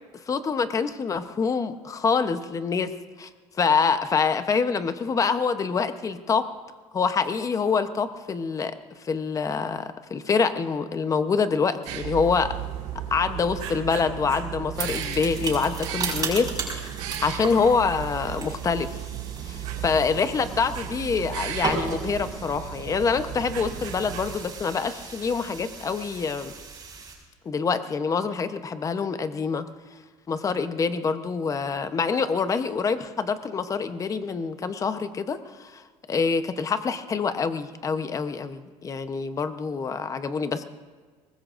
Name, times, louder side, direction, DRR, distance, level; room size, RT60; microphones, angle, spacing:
voice 1, 0.3-3.3 3.6-6.5 6.9-8.7 9.0-12.6 13.1-16.9 17.2-18.9 19.5-26.5 27.4-29.7 30.3-35.8 36.1-40.6, left 5 dB, 30° left, 10 dB, 0.9 m, -26 dB
sound 1, 11.9-24.4, right 11 dB, 90° right, 2.2 m, -35 dB
sound 2, 14.7-27.1, right 4 dB, 35° right, 5.6 m, -36 dB
24.0 x 20.5 x 2.6 m, 1.5 s
cardioid pair, 125°, 12 cm